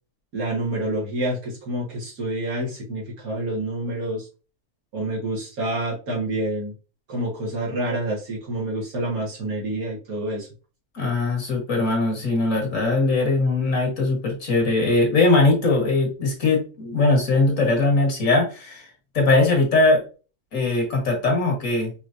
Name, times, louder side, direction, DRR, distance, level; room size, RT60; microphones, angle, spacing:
voice 1, 0.3-4.3 4.9-6.7 7.1-10.5, right 1 dB, 65° right, -4 dB, 2.1 m, -28 dB
voice 2, 10.9-18.8 19.1-20.0 20.5-21.9, left 2 dB, 60° left, 0 dB, 1.7 m, -20 dB
5.2 x 3.1 x 2.5 m, 0.34 s
omnidirectional pair, 1.6 m